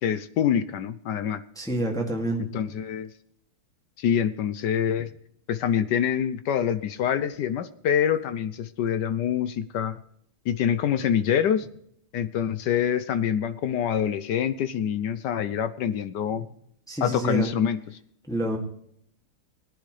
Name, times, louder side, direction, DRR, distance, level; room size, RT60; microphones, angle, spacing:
voice 1, 0.0-1.4 2.5-3.1 4.0-5.1 5.5-10.0 10.5-11.7 12.1-16.4 17.0-17.8, left 9 dB, 70° left, 13 dB, 1.1 m, -25 dB
voice 2, 1.6-2.4 16.9-17.5 18.3-18.6, right 1 dB, ahead, 0 dB, 2.1 m, -27 dB
20.5 x 10.0 x 3.3 m, 0.69 s
omnidirectional pair, 2.4 m